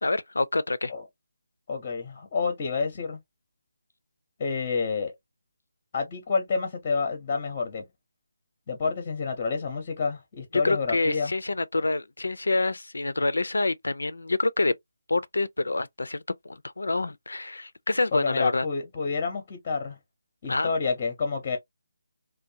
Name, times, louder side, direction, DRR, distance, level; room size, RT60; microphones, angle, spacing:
voice 1, 0.0-0.9 10.6-14.7 15.1-16.2 16.5-18.7 20.5-20.7, left 2 dB, 85° left, 0.3 m, -27 dB
voice 2, 1.7-3.2 4.4-5.1 5.9-7.9 8.7-11.3 18.1-20.0 20.4-21.6, left 4 dB, 30° left, 0.6 m, -29 dB
2.5 x 2.1 x 2.7 m
figure-of-eight pair, 160°, 0 cm